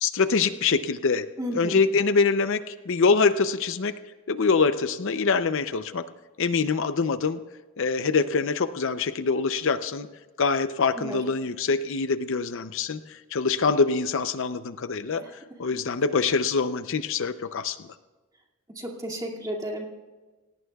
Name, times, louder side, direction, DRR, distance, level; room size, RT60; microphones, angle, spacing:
voice 1, 0.0-1.3 1.5-3.9 4.3-6.0 6.4-7.4 7.8-10.1 10.4-15.3 15.6-17.8, left 4 dB, 60° left, 11 dB, 0.6 m, -24 dB
voice 2, 1.4-1.8 11.0-11.2 18.8-19.8, equal, 15° right, -1 dB, 2.3 m, -33 dB
28.0 x 17.5 x 2.4 m, 1.3 s
head